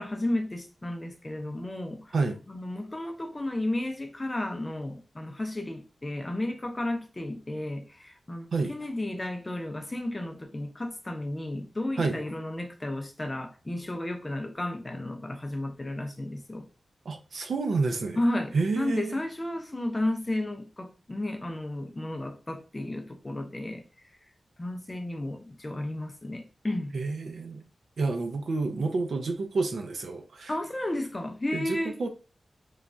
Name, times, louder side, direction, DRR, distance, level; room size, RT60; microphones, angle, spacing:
voice 1, 0.0-2.1 2.5-16.7 18.2-23.8 24.6-27.0 30.5-32.0, left 1 dB, 20° left, 0.4 m, -33 dB
voice 2, 17.1-18.2 18.5-19.2 26.9-27.6 28.0-30.5 31.5-32.1, right 3 dB, 75° right, 0.4 m, -29 dB
3.1 x 2.2 x 2.5 m
wide cardioid pair, 135°, 0 cm